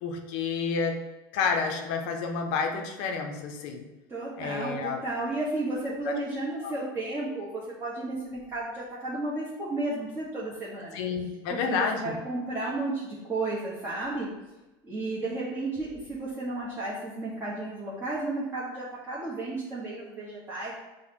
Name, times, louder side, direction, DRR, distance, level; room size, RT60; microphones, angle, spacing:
voice 1, 0.0-1.0 1.3-3.9 4.4-5.0 6.1-6.2 6.6-6.7 10.9-12.2, left 5 dB, 60° left, 4 dB, 0.5 m, -30 dB
voice 2, 4.1-11.0 11.5-14.3 14.8-20.7, right 2 dB, 20° right, -9 dB, 0.9 m, -33 dB
4.8 x 2.1 x 2.7 m, 1.0 s
supercardioid pair, 120°, 12 cm